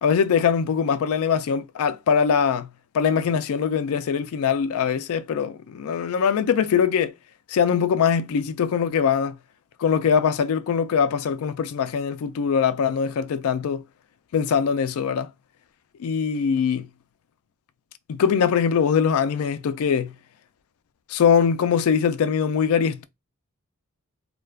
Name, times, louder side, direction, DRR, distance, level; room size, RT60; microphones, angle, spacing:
voice 1, 0.0-2.7 2.9-7.1 7.5-9.4 9.8-13.8 14.3-15.3 16.0-16.9 18.1-20.1 21.1-23.0, left 7 dB, 70° left, 0.3 m, -22 dB
2.3 x 2.2 x 3.3 m
head